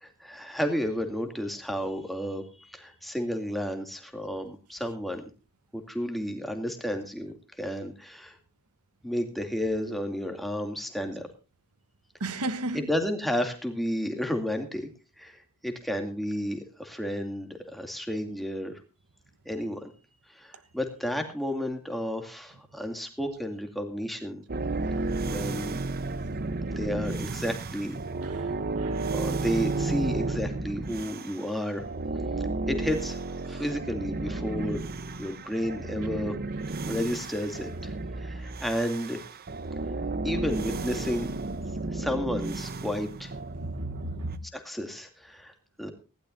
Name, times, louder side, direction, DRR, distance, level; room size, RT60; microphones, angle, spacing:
voice 1, 0.0-5.2 5.7-8.4 9.0-11.3 12.7-14.9 15.2-18.8 19.5-19.9 20.3-24.4 25.3-25.8 26.8-28.0 29.1-31.9 32.7-33.2 33.4-34.8 35.2-36.3 36.9-39.2 40.2-41.3 41.9-43.3 44.5-45.9, equal, ahead, 2.6 m, -32 dB
voice 2, 12.2-12.9 28.2-28.5 28.8-29.1 33.5-33.6 43.6-44.4, right 2 dB, 90° right, 1.2 m, -34 dB
sound 1, 24.5-31.5 31.8-44.4, right 3 dB, 45° right, 0.9 m, -33 dB
19.0 x 16.0 x 2.6 m
head